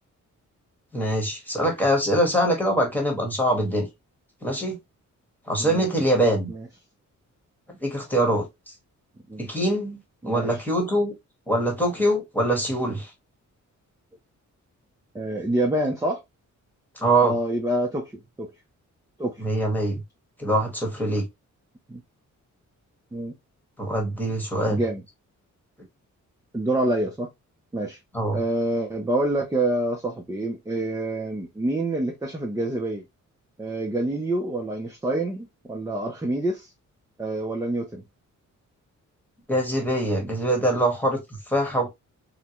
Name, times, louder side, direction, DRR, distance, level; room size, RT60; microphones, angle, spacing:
voice 1, 0.9-3.9 4.4-4.8 5.5-6.5 7.8-8.5 9.4-10.0 10.2-11.1 11.5-13.1 17.0-17.4 19.4-20.0 20.4-21.2 23.8-24.8 28.1-28.4 39.5-41.2 41.5-41.9, right 1 dB, 5° left, 1.2 m, -23 dB
voice 2, 15.1-16.2 17.2-18.5 19.2-19.4 21.9-22.0 23.1-23.3 24.7-25.0 26.5-27.3 27.7-28.0 28.3-33.0 33.6-36.7 37.2-38.0, right 1 dB, 10° right, 0.5 m, -27 dB
3.7 x 2.2 x 2.8 m
wide cardioid pair, 140°, 31 cm